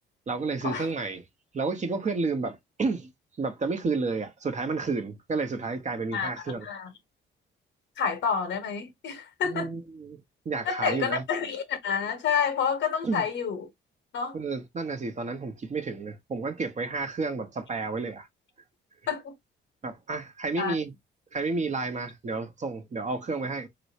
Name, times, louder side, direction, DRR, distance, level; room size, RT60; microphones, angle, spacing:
voice 1, 0.3-1.2 1.5-3.1 3.4-6.7 9.4-10.2 10.4-11.2 13.0-13.2 14.3-18.3 19.8-20.9 21.3-23.7, right 4 dB, 35° right, 0.9 m, -31 dB
voice 2, 8.0-9.7 10.6-13.7 14.1-14.4 19.1-19.3 20.6-20.7, left 6 dB, 70° left, 0.8 m, -29 dB
3.1 x 3.0 x 2.8 m
cardioid pair, 90°, 20 cm